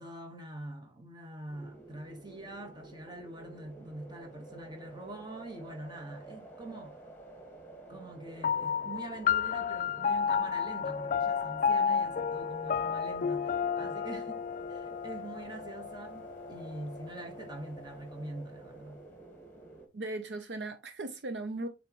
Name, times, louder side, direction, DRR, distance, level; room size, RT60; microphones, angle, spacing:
voice 1, 0.0-7.0 7.9-19.0, right 1 dB, 25° right, 1.3 m, -44 dB
sound 1, 1.5-19.9, right 2 dB, 10° left, 1.7 m, -51 dB
sound 2, 8.4-17.3, left 7 dB, 45° left, 0.4 m, -32 dB
voice 2, 19.9-21.7, right 2 dB, 65° right, 0.6 m, -37 dB
7.8 x 4.0 x 3.0 m
head